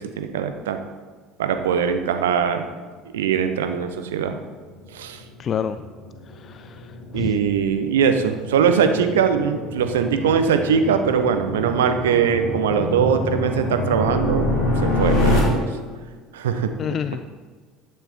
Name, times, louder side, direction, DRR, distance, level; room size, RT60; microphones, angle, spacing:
voice 1, 0.2-0.8 1.4-2.6 3.1-4.4 4.9-5.2 7.1-14.5 14.8-15.7 16.3-16.7, right 7 dB, 70° right, 8 dB, 0.8 m, -21 dB
sound 1, 4.3-15.4, left 1 dB, 55° left, 2.8 m, -27 dB
voice 2, 5.4-5.9 6.3-7.4 16.8-17.3, left 8 dB, 40° left, 12 dB, 0.3 m, -29 dB
11.5 x 9.1 x 4.5 m, 1.5 s
figure-of-eight pair, 65°, 0 cm